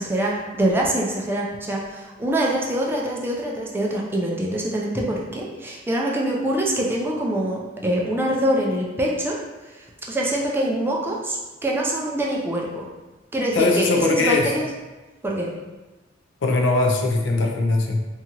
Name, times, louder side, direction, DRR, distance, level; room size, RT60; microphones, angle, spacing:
voice 1, 0.0-9.4 9.7-12.9 13.3-14.6 15.2-15.5, right 1 dB, 10° right, -3 dB, 0.3 m, -24 dB
voice 2, 13.6-14.5 16.4-18.0, left 3 dB, 80° left, 1 dB, 0.4 m, -20 dB
2.8 x 2.3 x 2.8 m, 1.1 s
head